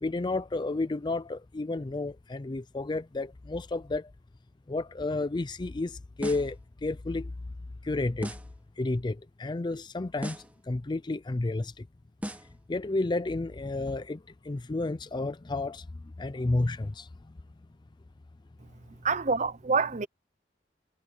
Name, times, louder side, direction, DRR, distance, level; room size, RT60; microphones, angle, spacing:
voice 1, 0.0-4.1 4.7-6.6 6.8-7.3 7.8-8.3 8.8-11.7 12.7-14.2 14.5-15.8 16.2-17.1, left 2 dB, 25° left, 0.5 m, -31 dB
sound 1, 6.2-6.6 8.2-8.6 10.2-10.6 12.2-12.6, equal, 10° right, 1.5 m, -38 dB
voice 2, 19.0-20.1, right 4 dB, 40° right, 0.8 m, -26 dB
head